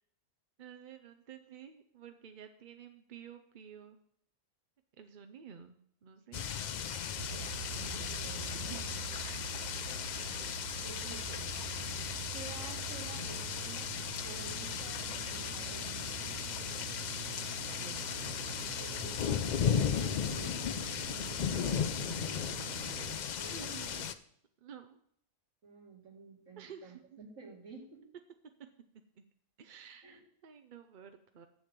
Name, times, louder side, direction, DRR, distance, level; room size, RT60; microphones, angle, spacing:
voice 1, 0.6-4.0 5.0-6.5 8.5-8.9 9.1-9.7 10.1-10.6 17.7-18.1 21.6-22.4 23.4-24.1 24.6-25.0 26.6-27.2 29.2-29.3 29.6-31.5, right 8 dB, 50° right, 7 dB, 0.6 m, -52 dB
sound 1, 6.3-24.1, left 8 dB, 65° left, 0.4 m, -36 dB
voice 2, 7.2-8.4 10.8-11.5 12.3-13.9 14.2-16.1 18.1-18.2 18.8-20.7 23.4-24.1 25.6-28.0 30.0-30.2, right 4 dB, 70° right, -1 dB, 2.6 m, -51 dB
sound 2, 7.2-23.2, right 9 dB, 85° right, 1.2 m, -45 dB
7.7 x 7.1 x 6.6 m, 0.66 s
omnidirectional pair, 1.4 m